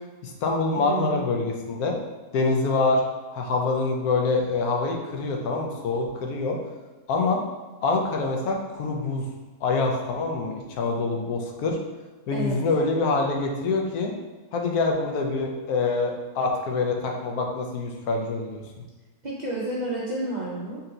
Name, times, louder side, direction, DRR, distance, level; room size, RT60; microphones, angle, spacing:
voice 1, 0.2-2.0 2.3-3.0 3.3-6.6 7.1-7.4 7.8-9.2 9.6-11.8 12.3-14.1 14.5-18.6, left 3 dB, 80° left, 1 dB, 1.2 m, -25 dB
voice 2, 0.7-1.3 12.3-12.6 19.2-20.8, right 2 dB, 50° right, -6 dB, 0.5 m, -30 dB
4.2 x 2.8 x 3.8 m, 1.3 s
omnidirectional pair, 1.6 m